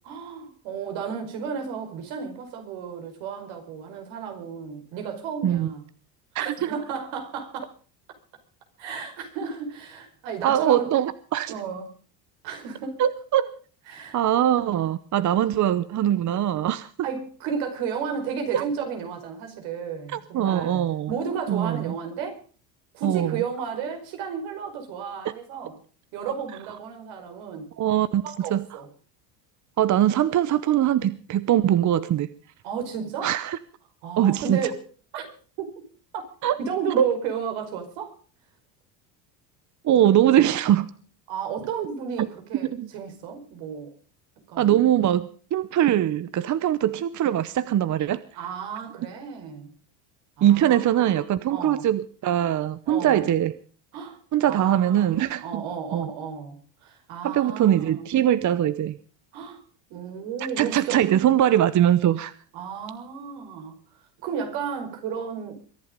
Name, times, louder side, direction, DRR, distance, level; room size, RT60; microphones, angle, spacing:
voice 1, 0.0-5.8 6.4-7.7 8.8-11.0 11.5-11.9 12.4-13.0 13.9-14.2 17.0-20.8 21.1-22.4 22.9-25.8 26.1-27.7 28.2-28.9 32.6-33.3 34.0-34.8 35.1-35.3 35.6-35.7 36.6-38.1 41.3-43.9 44.5-44.8 48.3-49.7 50.4-51.2 51.5-51.9 52.9-53.3 53.9-54.2 54.5-56.6 56.8-58.1 59.3-59.6 59.9-61.3 62.5-63.8 64.2-65.5, right 6 dB, 75° right, 5.1 m, -33 dB
voice 2, 6.3-6.7 10.4-11.5 13.0-13.5 14.1-17.1 18.5-18.6 20.1-21.1 21.5-21.9 23.0-23.4 27.8-28.7 29.8-32.3 33.2-33.6 34.2-34.7 36.4-36.6 37.0-37.1 39.8-40.9 42.2-42.3 42.7-42.9 44.6-48.2 50.4-53.5 54.3-55.6 55.9-56.1 57.2-59.0 60.4-62.3, right 11 dB, 40° right, 0.9 m, -22 dB
23.0 x 11.0 x 5.2 m
supercardioid pair, 105°, 47 cm